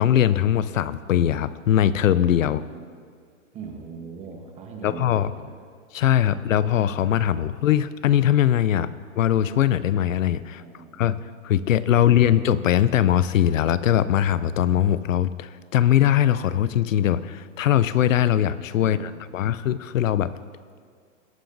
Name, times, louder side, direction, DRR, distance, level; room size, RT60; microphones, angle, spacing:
voice 1, 0.0-2.6 4.8-5.3 5.9-8.9 9.2-10.6 11.0-11.2 11.4-20.3, left 11 dB, 85° left, 16 dB, 0.6 m, -21 dB
voice 2, 2.4-2.9 3.5-5.6 10.4-11.2 11.9-12.4 18.8-19.7, right 5 dB, 15° right, 3 dB, 1.0 m, -42 dB
19.0 x 9.1 x 2.6 m, 2.1 s
hypercardioid pair, 145°, 38 cm